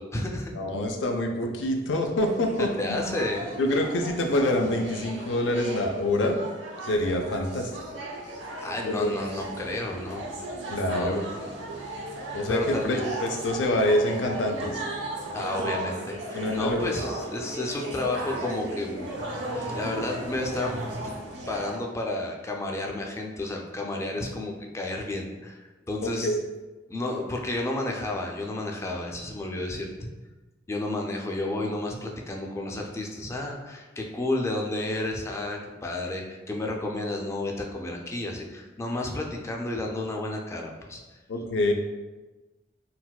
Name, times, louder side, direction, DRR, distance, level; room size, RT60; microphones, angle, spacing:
voice 1, 0.0-0.5 2.8-3.5 8.6-10.2 10.9-11.3 12.5-13.1 15.3-19.1 19.5-20.8 21.0-21.1 21.5-26.4 26.9-29.9 30.7-41.2, left 2 dB, 15° left, 1 dB, 0.3 m, -31 dB
voice 2, 0.5-3.0 3.6-6.4 6.8-8.0 8.8-9.1 10.7-11.2 11.5-11.6 12.3-14.8 15.2-15.3 15.6-15.7 16.3-16.8 26.0-26.4 41.3-41.7, left 1 dB, 85° left, 3 dB, 0.4 m, -26 dB
sound 1, 2.3-21.8, right 1 dB, 80° right, 0.6 m, -36 dB
3.9 x 2.1 x 2.2 m, 1.2 s
head